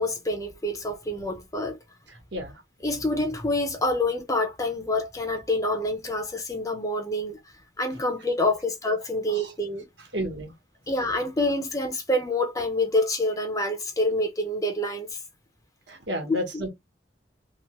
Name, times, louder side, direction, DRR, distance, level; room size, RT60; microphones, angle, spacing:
voice 1, 0.0-1.8 2.8-7.4 7.8-9.9 10.9-15.1 16.3-16.6, left 1 dB, 20° left, 0.6 m, -27 dB
voice 2, 2.1-2.6 9.3-9.5 10.1-10.5 15.9-16.7, equal, 75° right, 1.1 m, -32 dB
2.9 x 2.1 x 2.8 m
head